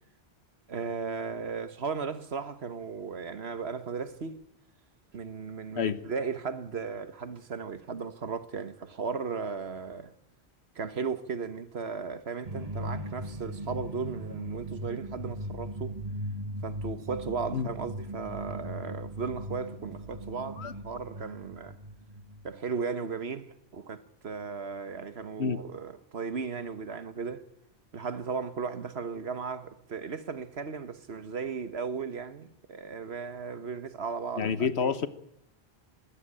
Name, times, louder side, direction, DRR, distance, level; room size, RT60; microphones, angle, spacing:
voice 1, 0.7-4.4 5.1-10.1 10.7-16.0 16.6-21.8 22.4-27.4 27.9-34.5 34.8-34.9, right 5 dB, 70° right, 1.5 m, -36 dB
sound 1, 12.5-22.6, equal, 35° right, 1.8 m, -39 dB
voice 2, 34.4-35.1, left 6 dB, 75° left, 1.3 m, -28 dB
20.5 x 15.0 x 8.9 m
omnidirectional pair, 1.1 m